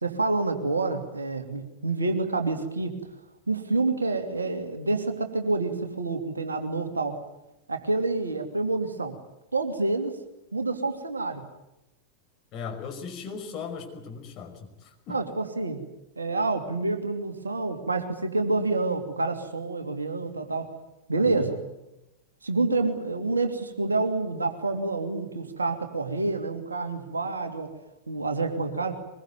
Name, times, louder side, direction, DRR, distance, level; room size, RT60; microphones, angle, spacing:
voice 1, 0.0-3.0 3.5-7.2 7.7-9.2 9.5-10.1 10.5-11.4 15.1-15.8 16.2-20.7 21.1-21.6 22.4-27.7 28.1-29.0, right 3 dB, 75° right, 6 dB, 2.9 m, -28 dB
voice 2, 12.5-15.2 21.4-21.5, left 5 dB, 35° left, 4 dB, 5.5 m, -38 dB
23.0 x 22.0 x 9.5 m, 0.90 s
figure-of-eight pair, 90°, 0 cm